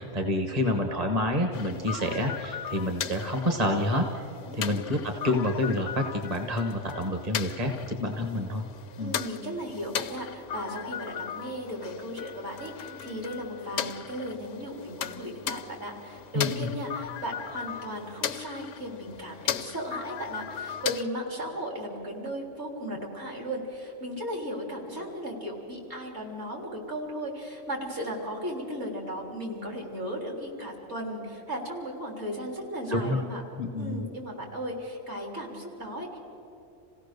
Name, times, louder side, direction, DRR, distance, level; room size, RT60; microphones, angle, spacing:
voice 1, 0.0-4.2 4.5-8.7 9.0-9.1 16.3-16.7 32.9-33.2 33.6-34.0, left 1 dB, 30° right, 4 dB, 1.3 m, -28 dB
sound 1, 1.5-21.0, left 9 dB, 80° left, 1.0 m, -37 dB
voice 2, 4.5-4.9 9.0-33.4 33.8-36.2, equal, 65° right, 0 dB, 3.9 m, -36 dB
27.0 x 16.5 x 6.7 m, 2.9 s
omnidirectional pair, 1.3 m